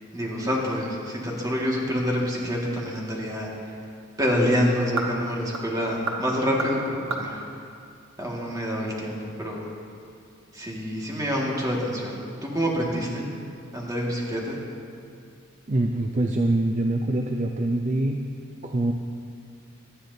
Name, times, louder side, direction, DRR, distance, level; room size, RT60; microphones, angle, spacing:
voice 1, 0.1-3.5 4.2-7.4 8.2-9.7 10.5-13.2 13.7-14.6, equal, 20° right, -3 dB, 1.8 m, -27 dB
sound 1, 4.8-8.7, right 3 dB, 85° right, 1.3 m, -36 dB
voice 2, 15.7-18.2 18.6-18.9, right 2 dB, 35° right, 3 dB, 0.5 m, -24 dB
18.0 x 12.0 x 2.7 m, 2.4 s
head